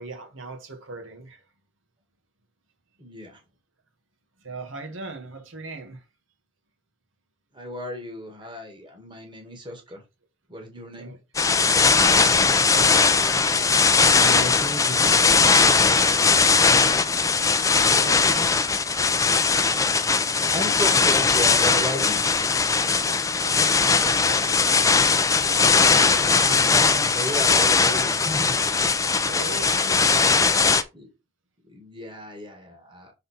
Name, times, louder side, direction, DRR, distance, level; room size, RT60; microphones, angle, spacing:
voice 1, 0.0-1.4 4.4-6.0 9.6-9.7 11.0-11.2 12.1-13.2 16.6-17.0 18.0-18.8 23.0-24.7 25.4-26.5 29.2-30.7, right 3 dB, 80° right, 1.7 m, -40 dB
voice 2, 3.0-3.3 7.5-10.0 10.5-11.1 14.0-15.2 19.2-19.3 20.5-22.2 26.2-28.6 30.9-31.1 31.7-33.1, equal, 25° right, 1.6 m, -34 dB
sound 1, 11.3-30.8, left 4 dB, 15° left, 0.5 m, -19 dB
Chink clink, 19.9-20.1 21.3-21.6 22.4-22.6, left 7 dB, 50° left, 0.9 m, -38 dB
6.6 x 3.8 x 4.2 m
head